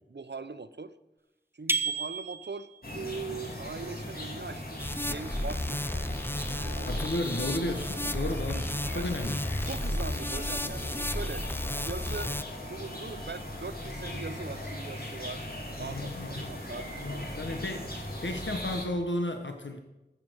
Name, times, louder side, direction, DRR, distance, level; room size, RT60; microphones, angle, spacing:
voice 1, 0.1-0.9 1.5-5.8 6.6-7.2 8.0-8.1 8.9-9.1 9.7-11.5 11.8-12.3 12.6-15.4 15.8-17.3, right 4 dB, 70° right, 13 dB, 0.7 m, -41 dB
sound 1, 1.7-2.8, right 4 dB, 10° right, 0.9 m, -31 dB
sound 2, 2.8-18.9, left 1 dB, 55° left, 3.0 m, -39 dB
sound 3, 4.8-12.4, left 1 dB, 10° left, 0.6 m, -33 dB
voice 2, 6.8-9.4 15.8-16.5 17.0-19.8, left 1 dB, 85° left, 4 dB, 1.1 m, -34 dB
13.5 x 6.9 x 7.9 m, 1.0 s
wide cardioid pair, 45°, 19 cm